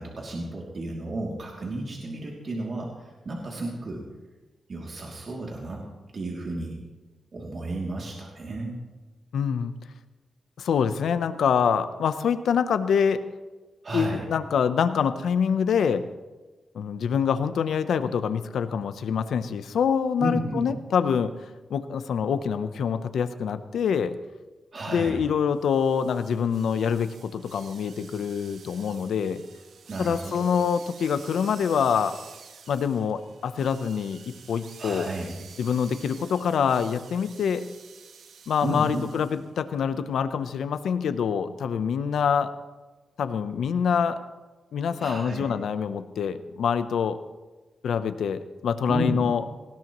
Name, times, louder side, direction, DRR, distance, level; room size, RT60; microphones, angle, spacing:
voice 1, 0.0-4.0 4.7-5.8 6.1-6.8 7.3-8.8 13.8-14.3 20.2-20.6 24.7-25.3 29.9-30.5 34.8-35.3 38.6-39.1 45.0-45.5 48.9-49.2, right 2 dB, 50° right, -2 dB, 2.7 m, -32 dB
voice 2, 9.3-9.7 10.6-13.2 13.9-16.0 16.7-21.3 21.7-24.1 24.9-29.4 30.0-32.2 32.7-34.2 34.5-35.1 35.6-37.6 38.5-42.5 43.2-44.2 44.7-47.2 47.8-49.4, left 7 dB, 85° left, 11 dB, 0.7 m, -25 dB
sound 1, 25.6-39.5, right 6 dB, 80° right, 1.2 m, -49 dB
19.0 x 17.0 x 3.1 m, 1.2 s
cardioid pair, 90°, 0 cm